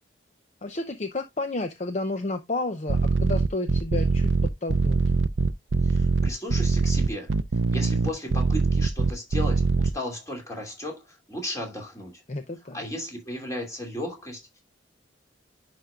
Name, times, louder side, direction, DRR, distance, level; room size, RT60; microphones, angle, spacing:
voice 1, 0.6-4.3 4.6-5.0 12.3-12.8, left 2 dB, 35° left, 0.6 m, -31 dB
sound 1, 2.9-9.9, right 4 dB, 85° right, 0.5 m, -22 dB
voice 2, 5.8-7.3 7.7-12.2 12.7-14.4, left 1 dB, 15° left, 2.7 m, -35 dB
10.0 x 5.2 x 2.4 m
head